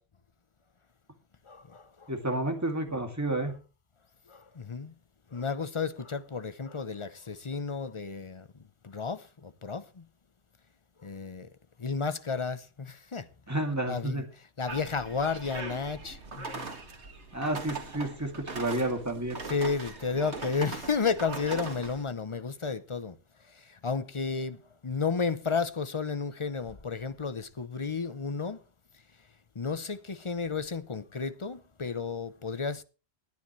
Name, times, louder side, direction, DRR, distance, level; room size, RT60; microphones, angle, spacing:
voice 1, 1.5-2.1 4.3-4.9 5.3-8.5 8.8-10.1 11.0-11.5 11.8-13.3 13.9-14.2 14.6-16.7 19.5-23.2 23.5-24.6 24.8-28.6 29.5-32.8, left 5 dB, 30° left, 0.7 m, -32 dB
voice 2, 2.1-3.5 13.5-14.3 17.3-19.4, right 1 dB, 15° right, 2.4 m, -30 dB
sound 1, 14.7-22.0, right 3 dB, 90° right, 2.3 m, -40 dB
20.0 x 10.0 x 3.2 m
omnidirectional pair, 1.1 m